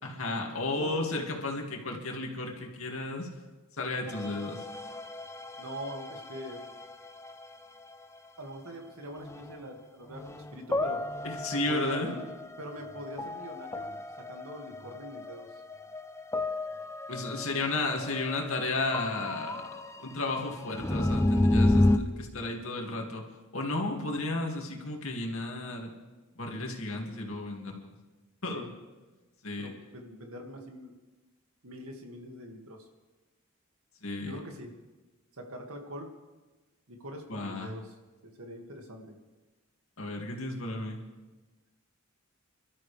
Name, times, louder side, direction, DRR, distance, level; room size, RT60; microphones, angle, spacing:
voice 1, 0.0-3.3 3.8-4.7 11.2-12.2 17.1-23.2 23.5-25.9 26.4-27.9 28.4-28.7 29.4-29.7 34.0-34.4 37.3-37.7 40.0-41.0, left 2 dB, 70° left, 1 dB, 2.4 m, -33 dB
voice 2, 0.6-1.0 5.6-6.6 8.4-11.0 11.5-12.3 12.6-13.9 14.2-15.6 28.5-28.7 29.6-30.9 31.6-32.9 34.2-34.7 35.4-36.1 36.9-37.9 38.2-39.2, equal, 80° right, 2 dB, 2.2 m, -43 dB
sound 1, 4.1-8.0 9.2-9.6 10.1-22.0, left 1 dB, 15° left, 0.5 m, -32 dB
27.0 x 13.0 x 3.4 m, 1.2 s
head